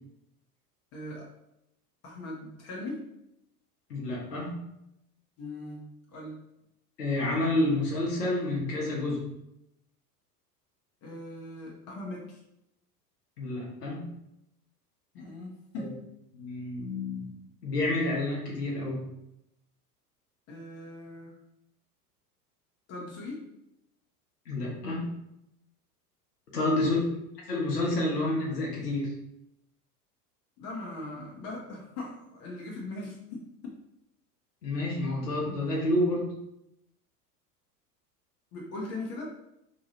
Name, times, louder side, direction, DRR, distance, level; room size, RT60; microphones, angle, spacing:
voice 1, 0.9-1.3 2.0-3.1 5.4-5.9 6.1-6.4 11.0-12.4 15.1-16.0 20.5-21.3 22.9-23.5 26.8-27.0 30.6-33.5 38.5-39.3, left 2 dB, 35° left, -2 dB, 0.6 m, -40 dB
voice 2, 3.9-4.5 7.0-9.2 13.4-14.0 15.8-15.9 16.3-17.3 17.6-19.1 24.5-25.1 26.5-27.0 27.5-29.1 34.6-36.3, left 1 dB, 80° left, -3 dB, 0.9 m, -29 dB
2.8 x 2.2 x 2.8 m, 0.83 s
figure-of-eight pair, 80°, 47 cm